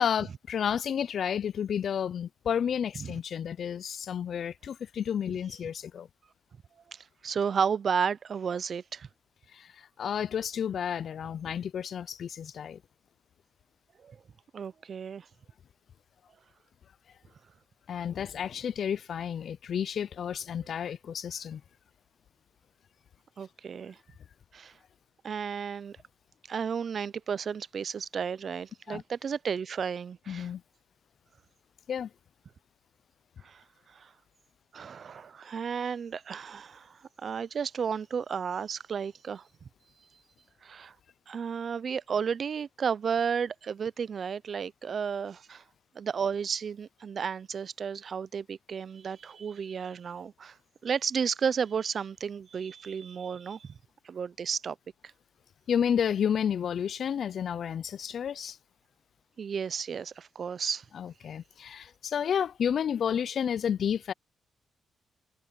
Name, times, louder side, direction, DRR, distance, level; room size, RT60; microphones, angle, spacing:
voice 1, 0.0-6.1 9.5-12.8 17.9-21.6 28.9-29.0 30.3-30.6 31.9-32.1 55.7-58.6 60.9-64.1, left 8 dB, 55° left, 0.3 m, -31 dB
voice 2, 6.9-9.1 14.0-14.2 14.5-15.3 23.4-24.0 24.5-24.7 25.2-26.0 26.5-30.5 33.4-33.6 33.9-34.1 34.7-39.4 40.6-40.9 41.3-45.6 46.0-50.5 50.8-53.7 54.0-54.8 59.4-60.8, right 6 dB, 45° right, 0.4 m, -33 dB
cardioid pair, 140°, 0 cm